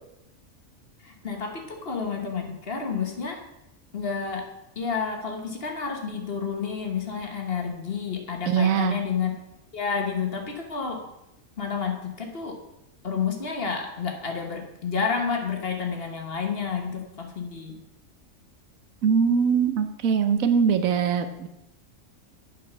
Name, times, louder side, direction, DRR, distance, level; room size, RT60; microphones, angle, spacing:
voice 1, 1.0-3.4 3.9-4.5 4.7-9.4 9.7-11.0 11.6-12.6 13.0-17.8, left 6 dB, 50° left, 3 dB, 1.5 m, -30 dB
voice 2, 8.5-9.0 19.0-21.5, right 6 dB, 85° right, 9 dB, 1.2 m, -22 dB
8.3 x 5.6 x 6.0 m, 0.88 s
omnidirectional pair, 1.4 m